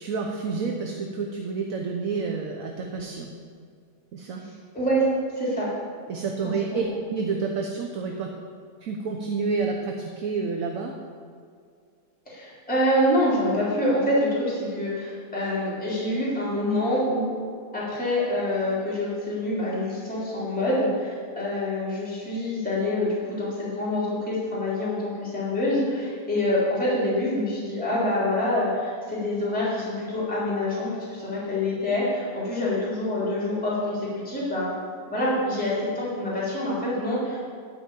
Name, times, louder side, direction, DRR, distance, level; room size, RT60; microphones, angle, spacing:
voice 1, 0.0-3.3 4.1-4.4 6.1-6.8 7.1-8.3 8.8-10.9, right 4 dB, 55° right, 2 dB, 1.2 m, -29 dB
voice 2, 4.7-5.0 5.4-5.7 6.4-6.9 12.3-17.3 17.7-34.7 35.1-37.4, left 1 dB, 5° left, -7 dB, 3.5 m, -26 dB
13.0 x 5.7 x 8.3 m, 2.2 s
omnidirectional pair, 2.0 m